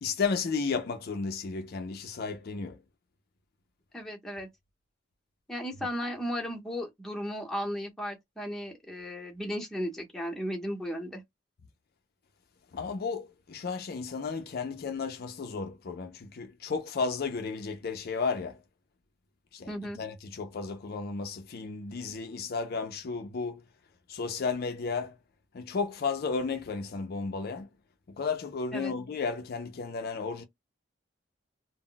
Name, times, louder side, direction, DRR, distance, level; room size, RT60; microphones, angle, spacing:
voice 1, 0.0-2.8 12.7-18.6 19.5-19.7 20.0-23.6 24.1-25.2 25.5-27.7 28.2-30.4, left 4 dB, 50° left, 0.4 m, -33 dB
voice 2, 3.9-4.5 5.5-11.2 19.7-20.0 28.7-28.9, equal, ahead, 0.8 m, -35 dB
2.1 x 2.0 x 3.7 m
head